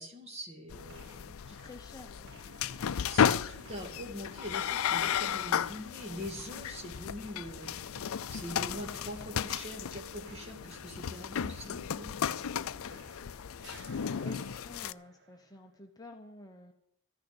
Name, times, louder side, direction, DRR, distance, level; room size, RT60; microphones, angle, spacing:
voice 1, 0.0-1.6 3.1-7.8 8.3-12.1, equal, 30° right, 2 dB, 2.5 m, -43 dB
sound 1, 0.7-14.9, left 8 dB, 70° left, 0.4 m, -34 dB
sound 2, 0.9-1.3 1.6-13.3 13.6-15.8, right 3 dB, 50° right, 1.1 m, -57 dB
voice 2, 1.4-2.1 11.6-11.9 14.2-16.7, left 1 dB, 15° left, 3 dB, 0.9 m, -50 dB
sound 3, 6.5-14.5, left 1 dB, 35° left, 3.4 m, -58 dB
14.0 x 6.6 x 9.9 m, 0.70 s
head